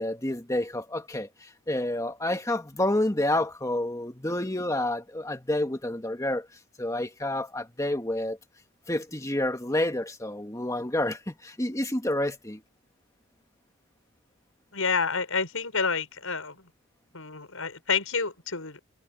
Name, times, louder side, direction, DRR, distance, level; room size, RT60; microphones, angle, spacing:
voice 1, 0.0-6.5 6.8-8.4 8.9-12.6, left 1 dB, 15° left, 1.8 m, -29 dB
voice 2, 14.7-16.6 17.1-18.8, left 5 dB, 85° left, 5.8 m, -29 dB
head